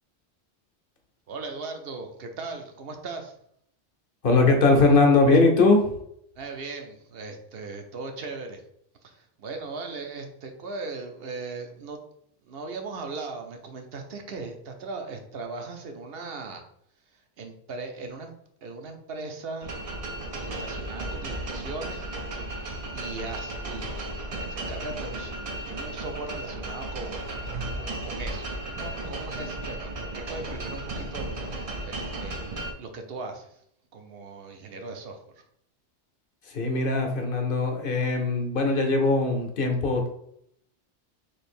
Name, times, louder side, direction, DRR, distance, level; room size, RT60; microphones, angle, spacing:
voice 1, 1.3-3.4 6.3-8.6 9.0-12.0 12.4-16.6 17.1-18.3 18.6-19.7 20.4-22.1 22.9-23.9 24.4-25.3 25.7-32.4 32.8-33.6 33.9-35.4, right 3 dB, 60° right, 4 dB, 0.9 m, -38 dB
voice 2, 4.2-5.9 36.5-40.1, left 3 dB, 55° left, 3 dB, 0.9 m, -21 dB
sound 1, 19.6-32.7, right 2 dB, 45° right, 0.5 m, -34 dB
3.3 x 2.8 x 4.3 m, 0.71 s
omnidirectional pair, 1.2 m